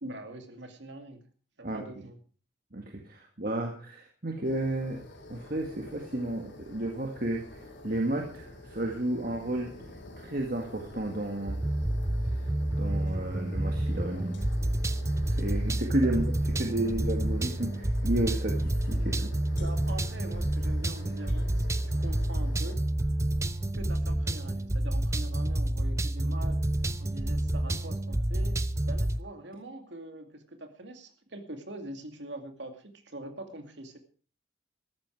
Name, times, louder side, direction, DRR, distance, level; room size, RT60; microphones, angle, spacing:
voice 1, 0.0-1.2 1.6-2.2 16.0-16.1 19.6-22.8 23.7-26.6 27.0-34.0, right 1 dB, 75° right, 6 dB, 2.3 m, -43 dB
voice 2, 2.7-5.0 5.3-9.7 10.2-11.6 12.3-12.4 12.8-14.4 15.3-19.3, right 1 dB, 50° right, 2 dB, 1.8 m, -32 dB
sound 1, 4.4-22.8, left 1 dB, 85° left, 4.2 m, -48 dB
sound 2, 11.5-29.2, right 1 dB, 15° right, 0.5 m, -29 dB
14.0 x 13.0 x 4.7 m, 0.39 s
head